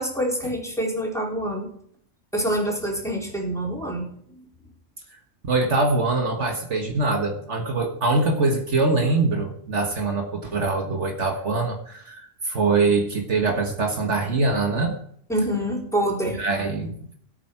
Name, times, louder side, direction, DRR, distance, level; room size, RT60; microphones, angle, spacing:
voice 1, 0.0-1.7 2.3-4.4 15.3-16.4, right 1 dB, ahead, -3 dB, 4.0 m, -26 dB
voice 2, 5.4-15.0 16.4-17.1, right 3 dB, 65° right, 3 dB, 1.9 m, -23 dB
16.5 x 8.8 x 4.7 m, 0.63 s
omnidirectional pair, 1.3 m